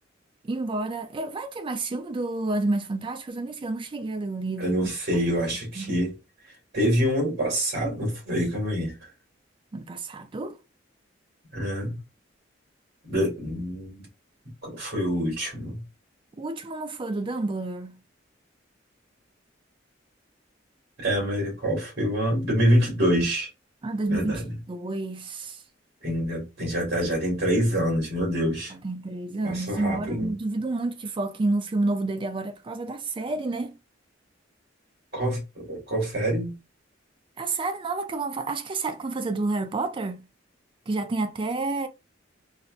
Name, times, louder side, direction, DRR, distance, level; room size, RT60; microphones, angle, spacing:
voice 1, 0.4-5.0 5.8-6.0 9.7-10.6 16.4-18.0 23.8-24.4 24.7-25.6 28.7-33.7 37.4-40.3 40.9-41.9, right 2 dB, 25° right, 0.4 m, -29 dB
voice 2, 4.6-6.1 6.7-8.9 11.5-12.0 13.0-14.0 14.6-15.8 21.0-23.5 24.1-24.5 26.0-28.7 29.4-30.3 35.1-36.5, equal, 60° right, 2.0 m, -26 dB
4.1 x 2.1 x 2.5 m
head